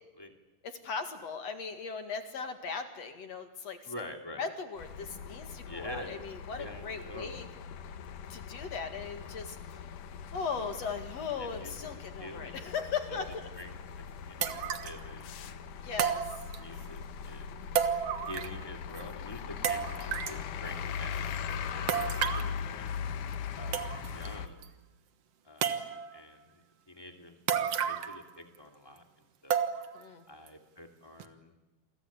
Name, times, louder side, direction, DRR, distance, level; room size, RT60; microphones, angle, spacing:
voice 1, 0.6-3.9 4.4-7.5 8.3-9.8 10.3-13.5 15.8-16.5 29.9-30.2, left 5 dB, 50° left, 7 dB, 2.7 m, -38 dB
voice 2, 3.8-4.4 5.5-6.2 6.5-7.5 11.4-12.7 13.1-13.2 13.5-13.8 14.1-16.1 16.5-17.6 18.3-22.9 23.6-24.7 25.4-29.1 29.4-29.6 30.3-31.6, left 1 dB, 10° left, 4 dB, 1.8 m, -47 dB
Ågotnes Terminal B format, 4.8-24.5, left 7 dB, 65° left, 2.5 m, -40 dB
sound 1, 13.6-13.7 14.4-15.0 16.0-16.8 17.8-18.7 19.0-19.1 19.6-20.4 21.9-22.5 23.3-23.4 23.7-24.3 24.6-24.7 25.6-26.2 27.5-28.3 28.5-28.6 29.5-30.0 30.5-30.6 31.2-31.3, right 8 dB, 60° right, 1.7 m, -32 dB
29.0 x 24.0 x 8.6 m, 1.1 s
omnidirectional pair, 4.4 m